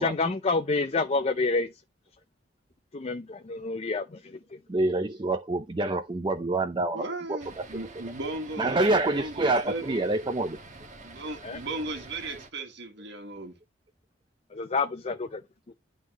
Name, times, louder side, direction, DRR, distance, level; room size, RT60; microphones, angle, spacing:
voice 1, 0.0-1.7 2.9-4.4 11.4-11.6 14.5-15.4 15.7-15.8, left 3 dB, 35° left, 0.5 m, -28 dB
voice 2, 4.7-7.0 7.3-7.8 8.6-10.6, right 2 dB, 25° right, 0.6 m, -27 dB
voice 3, 6.9-9.9 11.0-13.5, right 2 dB, 65° right, 1.7 m, -36 dB
sound 1, 7.4-12.5, right 2 dB, 40° right, 1.2 m, -47 dB
11.0 x 3.9 x 3.0 m
head